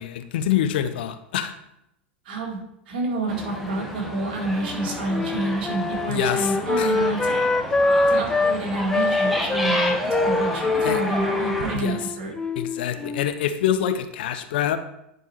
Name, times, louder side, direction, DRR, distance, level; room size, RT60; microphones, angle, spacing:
voice 1, 0.0-1.5 6.1-6.5 6.8-6.9 10.8-11.0 11.7-12.0 12.6-14.8, left 10 dB, 65° left, 9 dB, 0.6 m, -25 dB
voice 2, 2.3-2.6 2.9-7.5 7.8-12.3, right 2 dB, 60° right, 0 dB, 1.9 m, -28 dB
sound 1, 3.3-11.8, equal, ahead, 1.3 m, -30 dB
Wind instrument woodwind instrument, 4.6-8.6 8.9-13.4, left 3 dB, 15° left, 0.3 m, -24 dB
10.5 x 4.5 x 3.2 m, 0.82 s
figure-of-eight pair, 85°, 6 cm